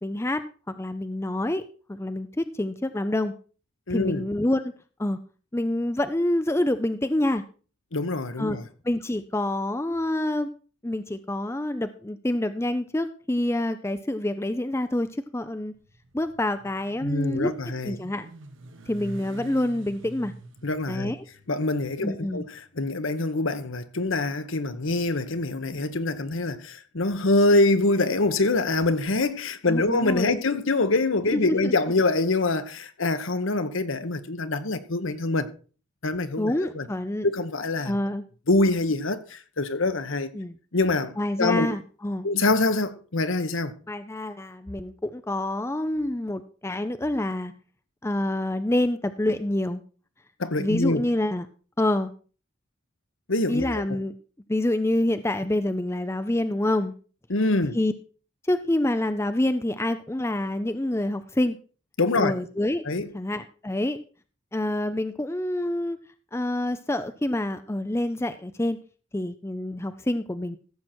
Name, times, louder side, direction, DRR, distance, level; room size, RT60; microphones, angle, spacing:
voice 1, 0.0-3.3 3.9-4.7 5.0-5.2 5.5-7.4 8.4-8.6 8.8-10.5 10.8-15.7 16.1-17.5 17.8-18.3 18.9-20.3 20.9-21.3 22.0-22.5 29.7-30.4 31.3-31.7 36.4-37.3 37.8-38.2 40.3-40.6 41.2-42.3 43.9-47.5 48.0-49.8 50.6-51.5 51.8-52.1 53.5-54.1 54.5-56.9 57.7-57.9 58.4-61.6 62.2-62.8 63.1-64.0 64.5-66.0 66.3-68.8 69.1-70.6, left 1 dB, 10° left, 0.5 m, -27 dB
voice 2, 3.9-4.2 7.9-8.6 17.0-18.0 20.6-21.1 21.5-35.5 36.0-36.9 37.2-38.0 38.5-40.3 40.7-41.7 42.2-43.7 50.4-51.0 53.3-53.8 57.3-57.8 62.0-62.3 62.9-63.0, left 2 dB, 65° left, 1.1 m, -25 dB
Motorcycle, 15.7-23.9, right 2 dB, 60° right, 1.4 m, -46 dB
15.0 x 7.7 x 4.4 m
head